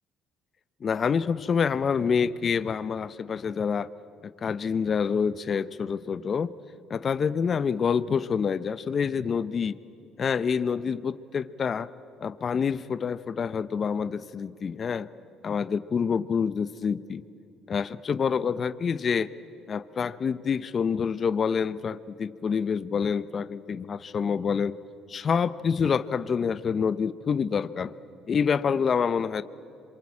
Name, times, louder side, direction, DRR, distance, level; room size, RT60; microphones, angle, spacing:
voice 1, 0.8-3.9 4.2-6.5 6.9-9.8 10.2-11.9 12.2-15.1 15.4-17.2 17.7-19.3 19.7-24.7 25.1-27.9 28.3-29.4, left 6 dB, 40° left, 15 dB, 0.7 m, -27 dB
26.5 x 23.0 x 8.6 m, 2.7 s
supercardioid pair, 80°, 0 cm